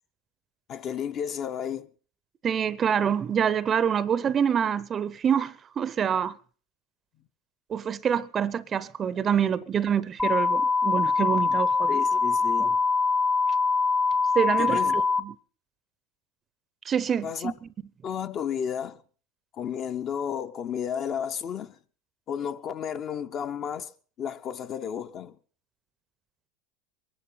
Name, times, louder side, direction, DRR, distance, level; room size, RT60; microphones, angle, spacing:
voice 1, 0.7-1.9 11.9-12.8 14.6-14.9 17.2-17.5 18.0-19.0 19.6-21.8 22.3-23.9 24.2-25.3, left 8 dB, 40° left, 1.0 m, -32 dB
voice 2, 2.4-6.4 7.7-12.0 14.3-15.3 16.8-17.7, right 8 dB, 30° right, 0.7 m, -26 dB
sound 1, 10.2-15.2, left 4 dB, 10° left, 0.9 m, -23 dB
22.5 x 11.5 x 5.7 m
supercardioid pair, 110°, 0 cm